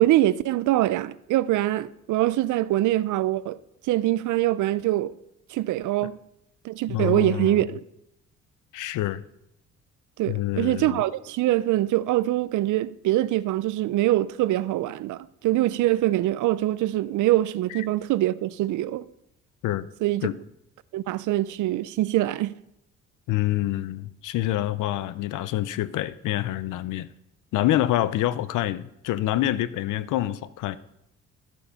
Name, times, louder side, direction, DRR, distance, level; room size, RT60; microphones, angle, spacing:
voice 1, 0.0-3.6 3.9-5.1 5.5-6.1 6.6-7.8 10.2-19.0 20.0-20.3 20.9-22.5, right 15 dB, 75° right, 0.5 m, -24 dB
voice 2, 6.9-7.7 8.7-9.2 10.3-11.0 17.7-17.9 19.6-19.9 20.2-20.4 23.3-27.1 27.5-30.8, left 14 dB, 85° left, 0.6 m, -27 dB
13.0 x 7.0 x 5.6 m
cardioid pair, 90°, 30 cm